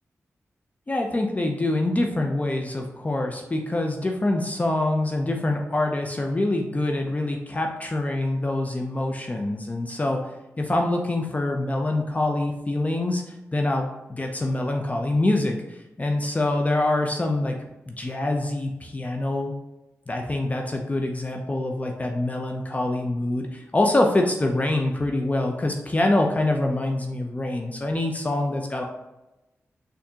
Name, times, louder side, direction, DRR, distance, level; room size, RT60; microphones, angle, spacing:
voice 1, 0.9-17.6 17.9-19.5 20.1-28.8, left 2 dB, 30° left, 2 dB, 0.5 m, -25 dB
4.2 x 2.6 x 2.8 m, 1.0 s
cardioid pair, 45°, 5 cm